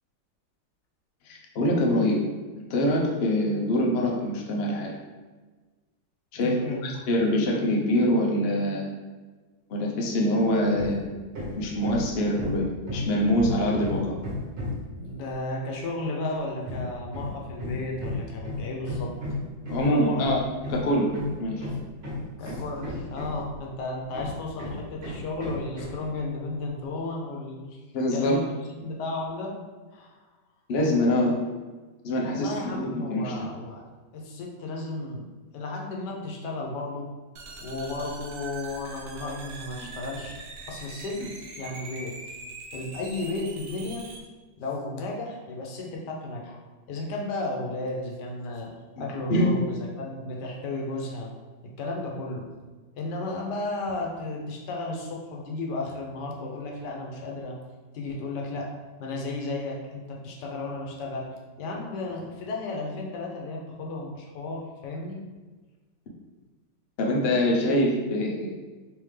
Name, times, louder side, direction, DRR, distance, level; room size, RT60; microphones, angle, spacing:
voice 1, 1.2-2.2 2.6-4.9 6.3-8.9 9.7-11.0 11.6-12.6 12.9-14.1 19.7-20.4 20.7-21.1 21.4-21.7 27.9-28.4 30.7-31.4 32.0-33.5 41.2-41.3 49.3-49.6 67.0-68.5, left 1 dB, 60° left, -2 dB, 0.6 m, -24 dB
voice 2, 6.3-7.0 15.0-19.1 19.8-20.3 22.4-27.8 28.1-28.4 28.7-29.6 29.9-30.2 32.2-33.8 34.1-35.3 35.5-37.1 37.6-42.2 42.7-44.1 44.6-46.6 46.9-48.7 49.0-51.3 51.6-52.5 52.9-57.6 57.9-58.7 59.0-61.3 61.6-65.2, left 2 dB, 80° left, -1 dB, 1.3 m, -34 dB
Hammer, 10.7-11.0 11.3-14.9 16.6-23.6 24.1-26.1, left 2 dB, 40° right, 1.1 m, -34 dB
sound 1, 37.4-44.2, right 3 dB, 75° right, 1.2 m, -42 dB
3.5 x 3.2 x 3.2 m, 1.3 s
omnidirectional pair, 1.9 m